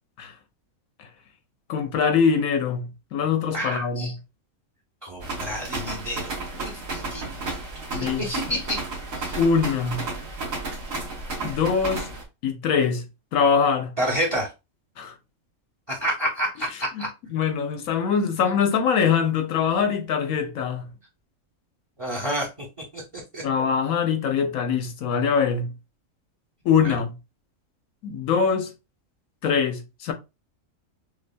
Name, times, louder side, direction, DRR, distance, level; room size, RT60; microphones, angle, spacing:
voice 1, 1.7-4.2 7.9-8.6 9.4-10.0 11.4-12.1 12.4-13.0 13.3-13.9 15.0-15.2 16.9-17.0 17.3-20.9 23.4-25.7 26.6-27.1 28.0-28.7 29.4-30.1, left 6 dB, 85° left, 1.2 m, -23 dB
voice 2, 3.5-4.1 5.0-7.6 7.9-8.8 9.1-9.4 14.0-14.5 15.9-17.1 22.0-22.5 22.9-23.4 26.8-26.9, equal, 25° right, 1.0 m, -29 dB
sound 1, 5.2-12.2, right 3 dB, 80° right, 1.5 m, -33 dB
6.1 x 2.3 x 2.2 m
omnidirectional pair, 1.4 m